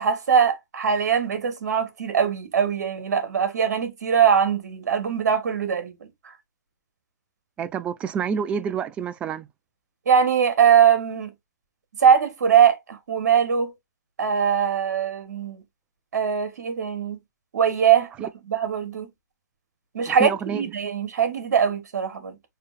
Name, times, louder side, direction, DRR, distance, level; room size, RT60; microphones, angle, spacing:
voice 1, 0.0-6.1 10.0-11.3 12.0-13.7 14.2-15.6 16.1-17.2 17.5-19.1 19.9-22.4, right 7 dB, 60° right, 1.4 m, -21 dB
voice 2, 7.6-9.5 18.2-18.3 20.1-20.6, right 7 dB, 10° right, 0.3 m, -28 dB
6.7 x 3.0 x 2.5 m
figure-of-eight pair, 125°, 10 cm